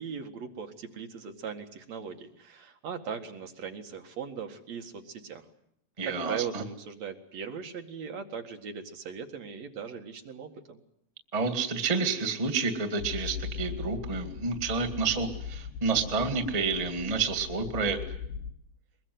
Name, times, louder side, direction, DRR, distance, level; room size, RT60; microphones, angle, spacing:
voice 1, 0.0-5.5 6.0-10.8, right 6 dB, 50° right, 4 dB, 2.5 m, -39 dB
voice 2, 6.0-6.6 11.3-18.0, right 4 dB, 70° right, 7 dB, 0.3 m, -29 dB
sound 1, 13.0-18.5, left 7 dB, 80° left, 3.6 m, -39 dB
22.5 x 22.0 x 9.5 m, 0.72 s
omnidirectional pair, 4.8 m